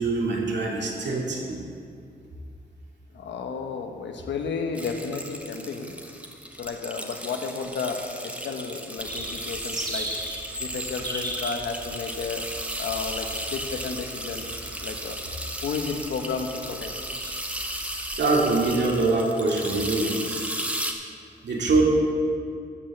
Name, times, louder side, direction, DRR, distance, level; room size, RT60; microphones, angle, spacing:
voice 1, 0.0-1.6 18.2-20.4 21.4-21.8, right 3 dB, 75° right, -3 dB, 2.5 m, -24 dB
voice 2, 3.1-6.0 6.6-10.1 10.6-12.4 12.8-14.6 14.8-15.2 15.6-16.9, left 5 dB, 90° left, 4 dB, 1.1 m, -32 dB
sound 1, 4.7-20.9, right 1 dB, 5° right, 1.2 m, -35 dB
sound 2, 9.0-18.7, right 1 dB, 25° right, 2.5 m, -38 dB
14.0 x 5.5 x 7.2 m, 2.3 s
cardioid pair, 80°, 18 cm